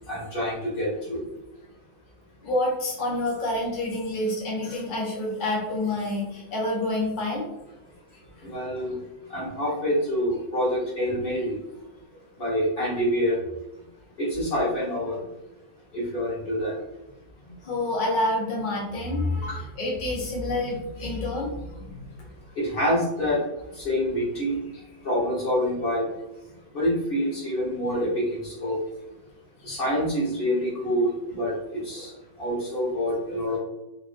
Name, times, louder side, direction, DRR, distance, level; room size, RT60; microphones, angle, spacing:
voice 1, 0.1-1.2 8.4-8.9 9.3-11.5 12.4-13.4 14.2-15.2 15.9-16.7 19.4-19.6 22.6-23.4 23.8-24.5 25.0-26.1 26.7-28.8 29.6-31.1 31.4-31.5 31.8-32.1 32.4-33.6, equal, 40° left, -7 dB, 1.3 m, -26 dB
voice 2, 2.4-7.5 17.6-22.1, left 1 dB, 60° left, -3 dB, 0.5 m, -28 dB
3.1 x 2.5 x 2.5 m, 0.95 s
omnidirectional pair, 1.6 m